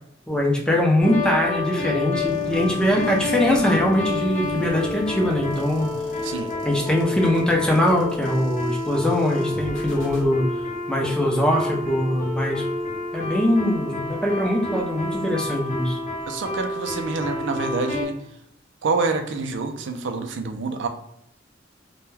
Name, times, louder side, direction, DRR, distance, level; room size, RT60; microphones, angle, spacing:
voice 1, 0.3-5.9 6.6-10.5 10.9-12.6 13.1-16.0, left 1 dB, 5° left, -1 dB, 0.4 m, -22 dB
sound 1, 1.0-18.1, left 2 dB, 40° left, 0.8 m, -29 dB
sound 2, 2.3-10.3, left 1 dB, 85° left, 0.7 m, -39 dB
voice 2, 16.3-18.4 18.8-20.9, right 4 dB, 65° right, 5 dB, 0.4 m, -27 dB
2.2 x 2.2 x 3.1 m, 0.75 s
head